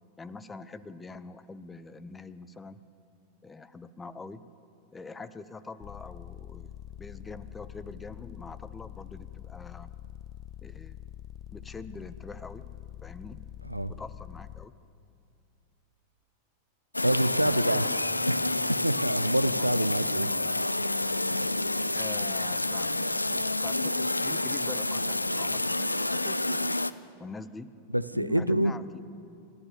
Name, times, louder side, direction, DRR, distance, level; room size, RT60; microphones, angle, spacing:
voice 1, 0.2-2.8 3.4-4.5 4.9-6.7 7.0-9.9 10.6-11.0 11.5-12.7 13.0-13.4 13.9-14.7 17.3-18.1 19.6-19.7 21.9-26.7 27.2-27.7 28.1-29.0, left 3 dB, 15° left, 15 dB, 0.8 m, -44 dB
sound 1, 5.8-14.7, left 13 dB, 35° left, 0.5 m, -45 dB
sound 2, 16.9-26.9, left 2 dB, 85° left, 0.5 m, -29 dB
voice 2, 17.0-17.9 18.3-20.3 27.9-28.8, right 1 dB, 90° right, 14 dB, 0.6 m, -27 dB
29.0 x 13.5 x 7.0 m, 2.4 s
figure-of-eight pair, 90°, 0 cm